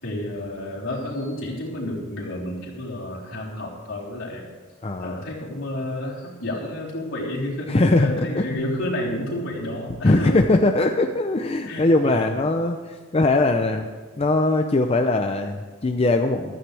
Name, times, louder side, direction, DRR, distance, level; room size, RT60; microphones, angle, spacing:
voice 1, 0.0-4.5 5.0-10.5 11.7-12.4, left 1 dB, 70° left, -5 dB, 3.7 m, -30 dB
voice 2, 4.8-5.2 7.7-8.5 10.0-13.9 14.2-16.6, left 2 dB, 30° left, 5 dB, 0.6 m, -21 dB
sound 1, 8.5-12.0, equal, 85° left, 1.1 m, -41 dB
15.0 x 13.0 x 3.4 m, 1.4 s
head